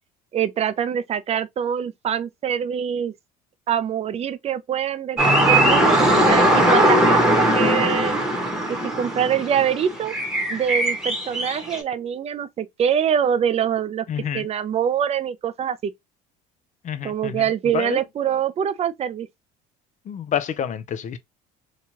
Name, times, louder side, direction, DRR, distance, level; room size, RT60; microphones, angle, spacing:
voice 1, 0.3-3.1 3.7-8.1 9.0-10.1 10.5-14.0 14.3-15.9 17.0-19.3, right 8 dB, 35° right, 0.5 m, -24 dB
sound 1, 5.2-11.8, right 1 dB, 5° right, 1.0 m, -19 dB
voice 2, 14.1-14.5 16.8-17.5 17.7-18.0 20.1-21.2, left 9 dB, 40° left, 0.5 m, -28 dB
2.9 x 2.3 x 2.8 m
supercardioid pair, 90°, 19 cm